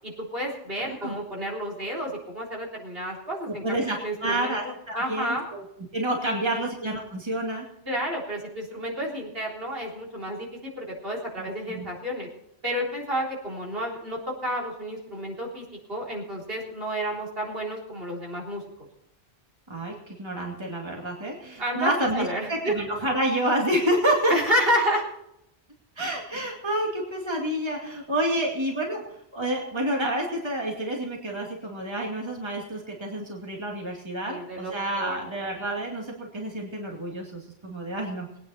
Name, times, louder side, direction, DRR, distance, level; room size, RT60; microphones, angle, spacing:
voice 1, 0.0-5.4 6.5-6.6 7.9-12.3 12.6-18.6 20.4-20.5 21.6-22.8 24.3-25.0 34.2-35.2, equal, 65° right, -2 dB, 4.0 m, -30 dB
voice 2, 0.8-1.2 3.5-5.6 5.9-7.6 11.4-11.9 19.7-24.3 26.0-29.0 29.3-38.3, right 1 dB, 25° right, -1 dB, 2.4 m, -29 dB
21.0 x 9.6 x 4.3 m, 0.78 s
omnidirectional pair, 1.1 m